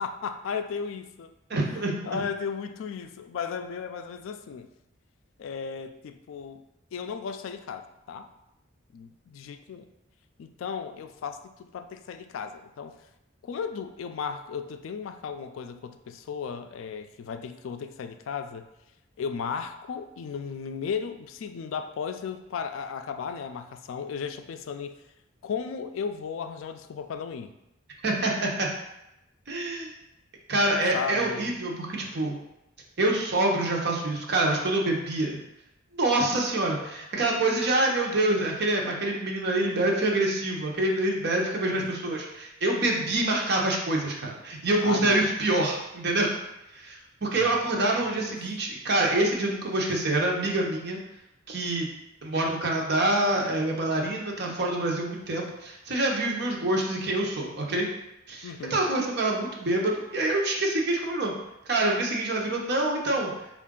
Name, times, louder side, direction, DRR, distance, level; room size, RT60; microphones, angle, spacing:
voice 1, 0.0-1.6 2.0-4.7 5.4-6.6 6.9-8.3 8.9-9.9 10.4-13.0 13.4-18.7 19.2-25.0 25.4-27.5 30.9-31.5 41.7-41.9 44.8-45.3 47.3-47.6 47.9-48.4 58.4-58.8, left 6 dB, 70° left, 8 dB, 0.3 m, -35 dB
voice 2, 1.5-2.2 28.0-28.7 29.5-29.9 30.5-32.4 33.0-35.4 35.9-46.3 46.7-51.0 51.5-51.9 52.2-57.9 58.3-61.3 61.7-63.3, right 2 dB, 50° right, -1 dB, 0.7 m, -26 dB
4.5 x 2.4 x 3.6 m, 0.90 s
head